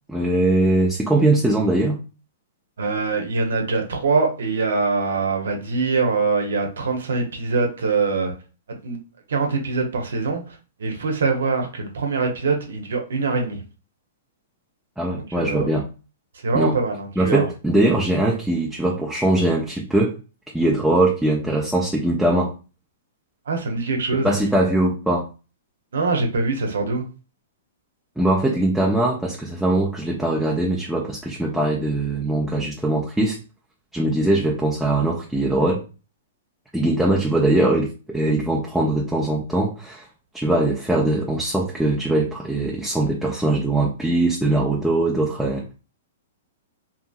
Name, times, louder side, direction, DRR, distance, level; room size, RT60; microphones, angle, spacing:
voice 1, 0.1-2.0 15.0-15.9 16.5-16.8 17.2-20.2 20.5-22.5 24.2-25.3 28.2-33.4 33.9-35.8 36.7-40.0 40.3-45.6, right 1 dB, ahead, -3 dB, 0.5 m, -21 dB
voice 2, 2.8-8.3 8.7-9.0 9.3-13.6 15.1-15.7 16.3-17.5 23.5-24.4 25.9-27.1, right 4 dB, 80° right, 2 dB, 0.7 m, -23 dB
2.7 x 2.6 x 2.3 m, 0.34 s
hypercardioid pair, 125°, 0 cm